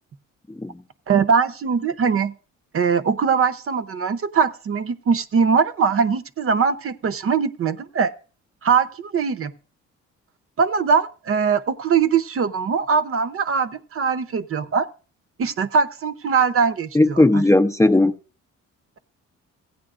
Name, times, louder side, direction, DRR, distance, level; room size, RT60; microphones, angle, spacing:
voice 1, 0.5-0.8 16.9-18.1, left 2 dB, 10° left, 0.5 m, -17 dB
voice 2, 1.1-2.3 2.7-8.1 8.6-9.5 10.6-14.9 15.4-16.9 17.3-17.4, right 6 dB, 45° right, 0.7 m, -21 dB
16.0 x 9.4 x 2.5 m
cardioid pair, 90°, 30 cm